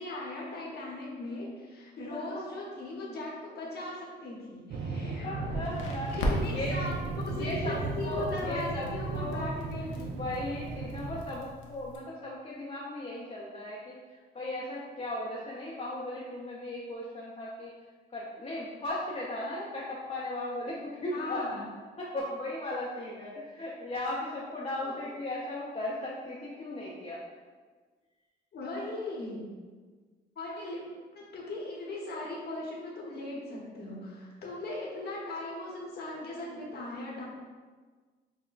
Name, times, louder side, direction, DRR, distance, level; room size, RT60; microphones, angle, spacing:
voice 1, 0.0-5.4 6.1-6.9 7.3-10.2 21.1-21.6 24.8-25.1 28.5-29.5 30.4-30.8 31.1-37.2, left 2 dB, 55° left, -4 dB, 1.1 m, -38 dB
voice 2, 2.1-2.4 5.2-6.1 6.5-6.8 7.3-9.5 10.2-17.7 18.1-21.6 22.0-27.2, left 1 dB, 30° left, -5 dB, 0.6 m, -37 dB
sound 1, 4.7-11.2, right 3 dB, 60° right, 0.4 m, -36 dB
Crackle, 5.4-12.0, left 1 dB, 80° left, 0.7 m, -38 dB
5.9 x 2.1 x 2.4 m, 1.4 s
cardioid pair, 90°, 20 cm